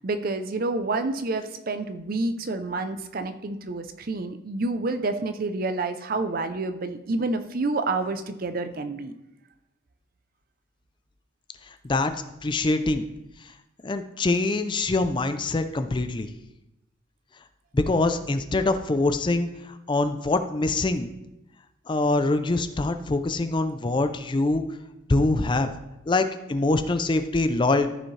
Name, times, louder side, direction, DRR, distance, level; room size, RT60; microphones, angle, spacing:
voice 1, 0.0-9.1, right 3 dB, 45° right, 9 dB, 0.6 m, -28 dB
voice 2, 12.4-13.0 13.8-16.3 17.7-21.1 21.9-24.6 25.1-25.7 26.1-27.9, left 2 dB, 25° left, 9 dB, 0.4 m, -24 dB
14.0 x 5.1 x 3.2 m, 0.90 s
head